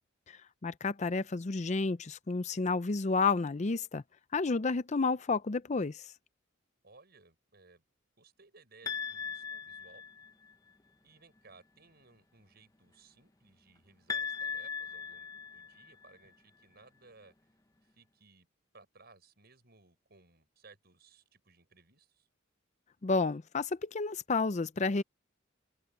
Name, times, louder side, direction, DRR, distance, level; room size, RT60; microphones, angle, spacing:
voice 1, 0.6-4.0 4.3-6.0 23.0-25.0, left 4 dB, 35° left, 0.5 m, -31 dB
voice 2, 6.8-7.8 8.2-10.0 11.0-17.3 17.8-18.5 18.7-22.3, right 3 dB, 55° right, 7.0 m, -60 dB
sound 1, 8.9-10.5 14.1-16.1, left 6 dB, 20° left, 1.0 m, -38 dB
head